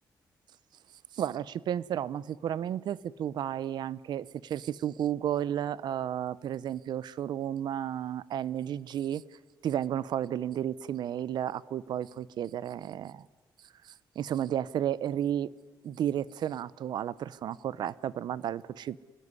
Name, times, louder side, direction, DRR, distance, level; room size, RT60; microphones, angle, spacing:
voice 1, 1.1-9.2 9.6-13.3 13.8-15.5 15.8-19.0, right 10 dB, 70° right, 20 dB, 0.8 m, -32 dB
26.5 x 19.5 x 9.7 m, 1.2 s
cardioid pair, 110°, 8 cm